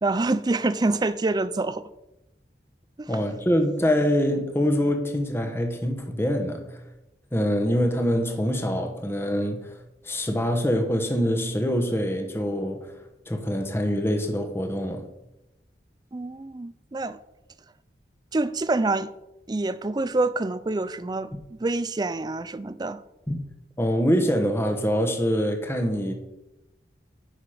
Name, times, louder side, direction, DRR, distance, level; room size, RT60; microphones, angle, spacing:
voice 1, 0.0-1.9 3.0-3.2 16.1-17.2 18.3-19.1 19.5-23.0, right 2 dB, 20° right, 0.4 m, -26 dB
voice 2, 3.1-6.8 7.3-9.8 10.0-15.1 21.3-21.4 23.3-23.4 23.8-26.1, equal, 15° left, 1.1 m, -25 dB
10.5 x 5.8 x 5.0 m
head